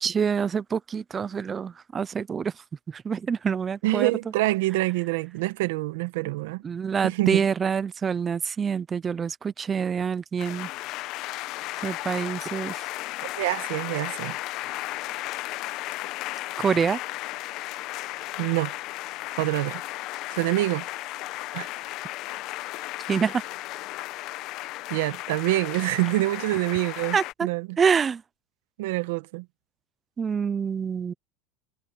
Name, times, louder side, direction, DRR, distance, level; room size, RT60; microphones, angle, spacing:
voice 1, 0.0-2.5 2.9-4.1 6.6-10.7 11.8-12.9 16.6-17.0 23.1-23.4 27.1-27.5 27.8-28.2 30.2-31.1, right 6 dB, 20° right, 0.6 m, -26 dB
voice 2, 3.8-6.6 7.0-7.4 13.2-14.4 18.4-18.7 19.4-19.8 20.3-20.8 21.5-21.7 24.9-27.8 28.8-29.4, right 19 dB, 75° right, 1.2 m, -26 dB
sound 1, 10.4-27.3, left 17 dB, 50° left, 1.0 m, -35 dB
supercardioid pair, 150°, 0 cm